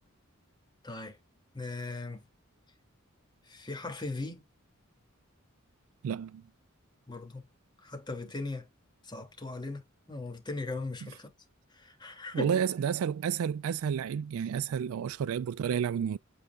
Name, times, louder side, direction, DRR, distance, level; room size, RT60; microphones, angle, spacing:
voice 1, 0.8-1.2 1.5-2.2 3.5-4.4 7.1-7.4 7.8-8.7 9.0-11.3 11.7-12.5, left 3 dB, 20° left, 2.5 m, -38 dB
voice 2, 6.0-6.4 12.3-16.2, right 7 dB, 80° right, 0.3 m, -30 dB
8.6 x 4.7 x 2.4 m
head